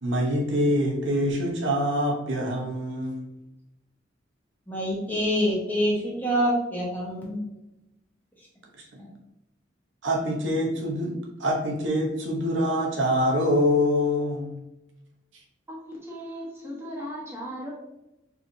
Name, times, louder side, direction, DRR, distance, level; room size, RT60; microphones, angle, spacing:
voice 1, 0.0-3.2 8.9-9.0 10.0-11.1 11.4-14.5, equal, 80° right, 0 dB, 0.9 m, -25 dB
voice 2, 4.7-7.4 9.0-9.1, equal, 10° left, -6 dB, 1.2 m, -26 dB
voice 3, 15.7-17.7, equal, 15° right, -4 dB, 1.2 m, -37 dB
4.6 x 3.3 x 2.7 m, 0.92 s
head